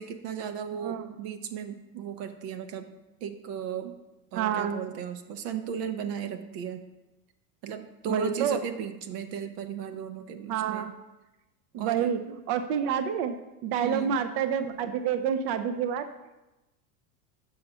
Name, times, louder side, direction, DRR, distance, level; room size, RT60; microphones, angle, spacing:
voice 1, 0.0-2.9 3.2-3.9 4.3-6.8 7.6-10.9 11.8-12.1 13.8-14.2, right 8 dB, 80° right, 7 dB, 0.9 m, -35 dB
voice 2, 0.7-1.1 4.3-4.8 8.1-8.6 10.5-10.9 11.7-16.1, right 8 dB, 50° right, 8 dB, 0.6 m, -28 dB
5.8 x 5.6 x 5.5 m, 1.0 s
supercardioid pair, 115°, 46 cm